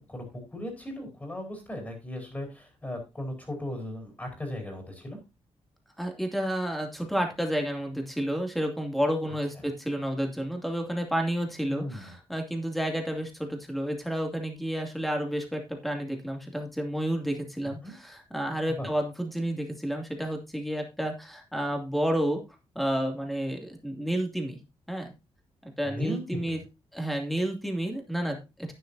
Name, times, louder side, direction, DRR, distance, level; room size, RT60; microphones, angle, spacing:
voice 1, 0.0-5.2 11.7-12.1 17.6-17.9 18.8-18.9 25.8-26.6, left 1 dB, 15° left, 2 dB, 4.3 m, -37 dB
voice 2, 6.0-22.4 22.7-24.6 24.9-25.1 25.6-26.6 26.9-28.7, equal, ahead, 3 dB, 2.5 m, -30 dB
11.5 x 9.5 x 2.7 m, 0.26 s
wide cardioid pair, 130°, 10 cm